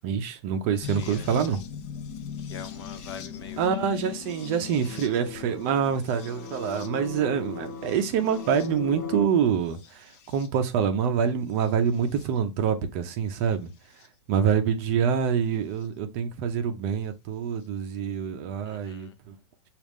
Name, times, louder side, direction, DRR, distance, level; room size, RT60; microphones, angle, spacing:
voice 1, 0.0-1.6 3.6-13.7 14.3-19.4, right 7 dB, 30° right, 0.5 m, -26 dB
sound 1, 0.8-9.0 9.7-10.5 11.6-12.3 14.0-14.1 15.8-15.9, left 8 dB, 25° left, 0.4 m, -41 dB
voice 2, 1.0-1.3 2.4-4.2 18.6-19.2, left 8 dB, 65° left, 0.7 m, -44 dB
sound 2, 3.3-9.2, left 6 dB, 40° left, 1.1 m, -39 dB
6.1 x 2.4 x 3.4 m
supercardioid pair, 170°, 15 cm